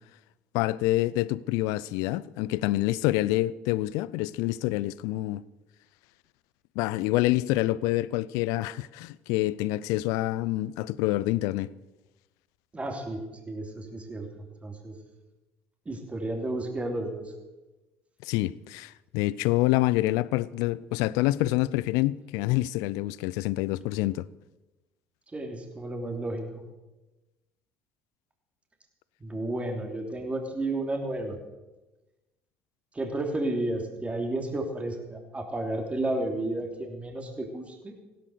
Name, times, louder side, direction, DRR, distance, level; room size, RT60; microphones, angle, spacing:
voice 1, 0.5-5.4 6.8-11.7 18.2-24.3, left 17 dB, 65° left, 0.5 m, -27 dB
voice 2, 12.7-14.9 15.8-17.3 25.3-26.6 29.2-31.4 32.9-37.9, right 2 dB, 20° right, 3.0 m, -32 dB
16.5 x 12.0 x 6.7 m
hypercardioid pair, 60°, 6 cm